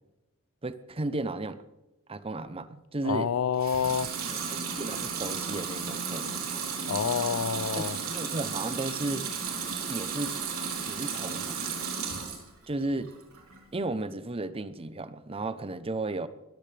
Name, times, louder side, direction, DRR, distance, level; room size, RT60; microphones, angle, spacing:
voice 1, 0.6-1.6 2.1-3.3 4.3-6.3 7.7-9.2 9.9-10.3 10.9-11.8 12.7-13.1 13.7-16.3, right 2 dB, 25° right, 0.7 m, -34 dB
voice 2, 3.0-4.1 6.9-8.0, left 7 dB, 90° left, 0.5 m, -28 dB
Water tap faucet / Sink (filling or washing) / Liquid, 3.5-12.5 12.9-13.6, right 6 dB, 90° right, 3.6 m, -34 dB
22.0 x 14.5 x 3.4 m
head